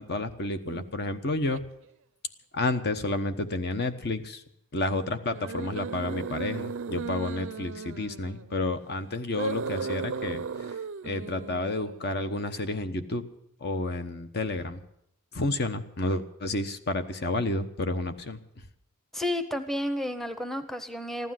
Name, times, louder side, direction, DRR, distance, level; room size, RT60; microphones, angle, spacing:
voice 1, 0.0-1.6 2.5-4.4 4.7-10.4 11.0-13.2 13.6-14.8 15.3-18.4, left 2 dB, 50° left, 9 dB, 1.0 m, -30 dB
sound 1, 0.6-0.9 1.5-1.6 5.3-8.6 9.3-12.2, right 5 dB, 65° right, 0.5 m, -36 dB
voice 2, 19.1-21.3, left 1 dB, ahead, 8 dB, 0.8 m, -31 dB
15.0 x 12.0 x 7.6 m, 0.75 s
head